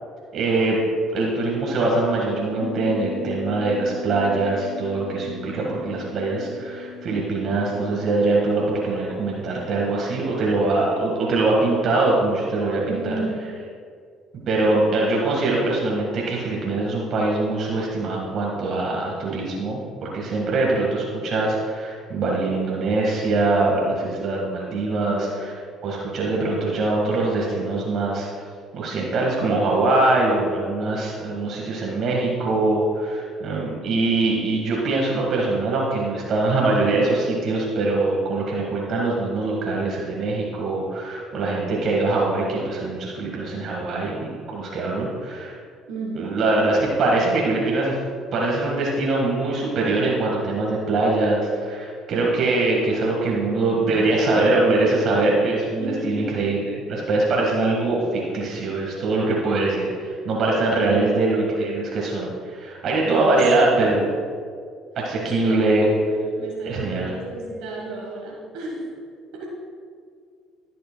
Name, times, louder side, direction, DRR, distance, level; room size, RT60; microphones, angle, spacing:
voice 1, 0.3-0.8 1.1-13.1 14.5-25.5 25.8-28.3 28.7-45.5 46.1-48.0 48.3-64.1 64.9-65.9 66.6-67.1, right 2 dB, 60° right, -3 dB, 1.7 m, -23 dB
sound 1, 2.6-10.9 11.2-11.3, left 7 dB, 35° left, 0.8 m, -39 dB
voice 2, 12.9-13.4 24.9-25.5 45.9-46.3 55.8-56.2 60.8-61.3 63.0-63.4 63.7-64.0 65.2-69.0 69.3-69.5, right 3 dB, 80° right, -4 dB, 1.5 m, -32 dB
15.5 x 6.5 x 2.3 m, 2.1 s
supercardioid pair, 70°, 0 cm